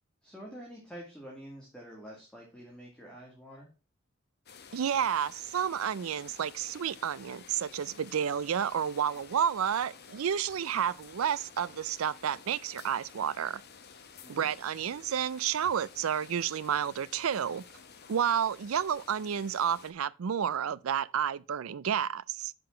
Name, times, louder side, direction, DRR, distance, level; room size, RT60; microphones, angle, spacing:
voice 1, 0.2-3.7 14.2-14.5, equal, 5° left, 2.1 m, -47 dB
sound 1, 4.5-19.9, left 6 dB, 50° left, 1.0 m, -52 dB
voice 2, 4.7-13.6 14.3-17.6 18.1-22.5, right 8 dB, 85° right, 0.4 m, -30 dB
6.7 x 5.8 x 5.7 m
head